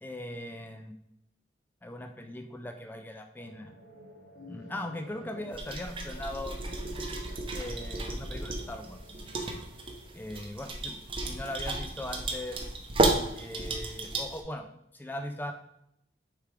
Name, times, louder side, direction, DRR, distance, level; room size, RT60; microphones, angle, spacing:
voice 1, 0.0-0.9 1.8-3.7 4.5-6.6 7.5-9.2 10.1-12.7 13.4-14.7 14.9-15.5, left 1 dB, 10° left, 5 dB, 0.3 m, -40 dB
sound 1, 3.4-11.3, right 1 dB, 80° left, 1.5 m, -51 dB
sound 2, 5.5-14.4, right 2 dB, 30° right, 0.7 m, -33 dB
6.7 x 3.4 x 4.7 m, 0.78 s
head